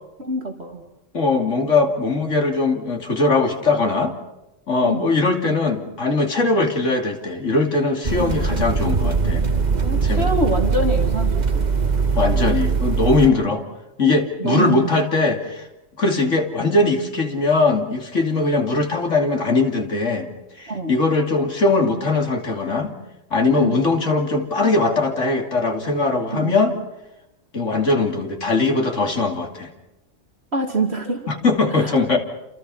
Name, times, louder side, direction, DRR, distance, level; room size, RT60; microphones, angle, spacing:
voice 1, 0.2-0.8 4.8-5.1 9.7-11.7 14.4-15.1 20.7-20.9 23.6-23.8 26.3-26.6 30.5-31.3 31.7-32.2, right 2 dB, 55° right, 3 dB, 2.8 m, -26 dB
voice 2, 1.1-4.1 4.7-9.4 10.0-10.3 12.1-13.6 14.0-15.6 16.0-20.3 20.6-22.9 23.3-26.7 27.5-29.7 31.3-32.2, left 3 dB, 75° left, 3 dB, 3.3 m, -20 dB
sound 1, 8.0-13.3, right 5 dB, 35° right, 1.4 m, -21 dB
28.5 x 28.0 x 5.7 m, 0.95 s
omnidirectional pair, 1.3 m